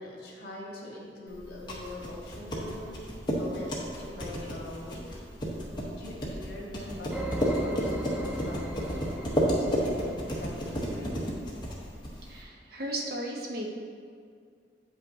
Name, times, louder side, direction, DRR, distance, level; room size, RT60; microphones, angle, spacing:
voice 1, 0.0-2.9 3.3-5.2 5.8-9.0 9.4-11.1, left 1 dB, 60° left, -3 dB, 1.4 m, -42 dB
sound 1, 1.4-12.4, equal, 25° left, 1.0 m, -32 dB
sound 2, 7.1-11.4, equal, 10° right, 0.4 m, -39 dB
voice 2, 12.3-13.7, right 1 dB, 55° right, -1 dB, 0.9 m, -35 dB
8.7 x 5.3 x 2.7 m, 2.2 s
head